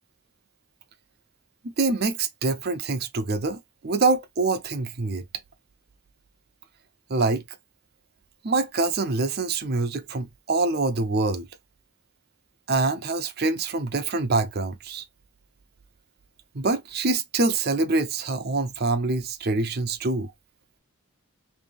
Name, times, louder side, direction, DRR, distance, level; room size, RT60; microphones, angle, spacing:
voice 1, 1.6-5.2 7.1-7.4 8.4-11.5 12.7-15.0 16.5-20.3, right 3 dB, 50° right, 0.6 m, -25 dB
4.0 x 2.7 x 3.5 m
head